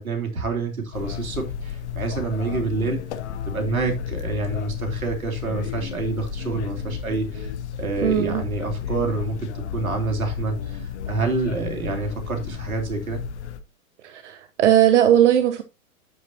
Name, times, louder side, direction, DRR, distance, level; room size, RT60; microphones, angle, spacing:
voice 1, 0.0-3.0 3.5-7.5 7.8-13.3, right 3 dB, 70° right, 3.1 m, -27 dB
sound 1, 0.9-13.6, left 8 dB, 50° left, 1.0 m, -32 dB
voice 2, 8.0-8.4 14.0-15.6, right 11 dB, 55° right, 0.9 m, -18 dB
9.6 x 8.2 x 2.7 m
figure-of-eight pair, 105°, 44 cm